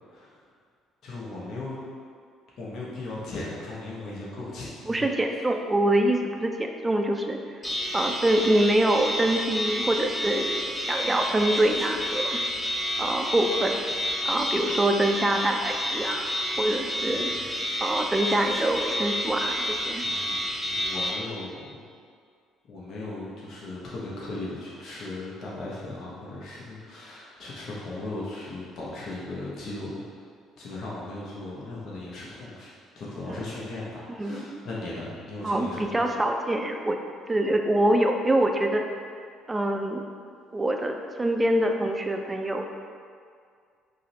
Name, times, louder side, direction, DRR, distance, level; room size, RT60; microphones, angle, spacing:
voice 1, 1.0-1.8 2.6-5.4 17.1-17.5 20.0-20.4 20.7-21.9 22.7-30.0 30.6-36.0, left 2 dB, 55° left, -6 dB, 0.7 m, -37 dB
voice 2, 4.9-7.6 7.9-12.4 13.0-13.8 14.2-16.3 16.6-17.6 17.8-20.0 34.1-34.6 35.4-37.0 37.3-38.8 39.5-40.0 40.5-42.6, right 1 dB, 15° right, 3 dB, 0.3 m, -25 dB
sound 1, 7.6-21.1, equal, 15° left, 0.6 m, -30 dB
4.9 x 2.0 x 2.8 m, 2.1 s
hypercardioid pair, 55°, 0 cm